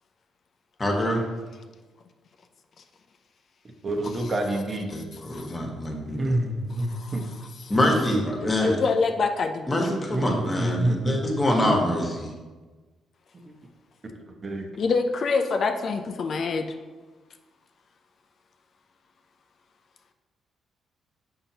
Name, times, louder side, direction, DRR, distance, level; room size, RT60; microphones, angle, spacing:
voice 1, 0.8-1.2 4.9-6.4 7.7-8.8 9.7-12.3, left 1 dB, 25° left, 0 dB, 1.3 m, -25 dB
voice 2, 3.8-4.9 6.2-7.3 10.1-11.2 11.6-11.8 13.4-13.5 14.3-14.7, right 1 dB, 35° right, 3 dB, 1.0 m, -27 dB
voice 3, 8.4-9.9 14.8-16.7, left 4 dB, 55° left, 5 dB, 0.5 m, -26 dB
6.7 x 5.6 x 2.9 m, 1.3 s
cardioid pair, 90°, 0 cm